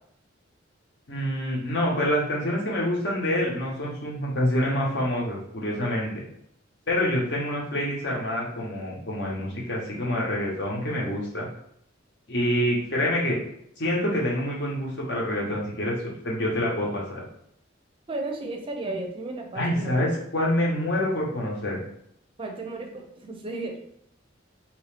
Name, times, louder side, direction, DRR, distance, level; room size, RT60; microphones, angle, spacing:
voice 1, 1.1-6.1 6.9-11.5 12.3-13.4 13.8-17.2 19.5-21.8, left 1 dB, 60° left, -3 dB, 1.0 m, -26 dB
voice 2, 18.1-20.0 22.4-23.8, right 2 dB, 30° right, 3 dB, 0.5 m, -34 dB
3.0 x 2.6 x 3.3 m, 0.71 s
head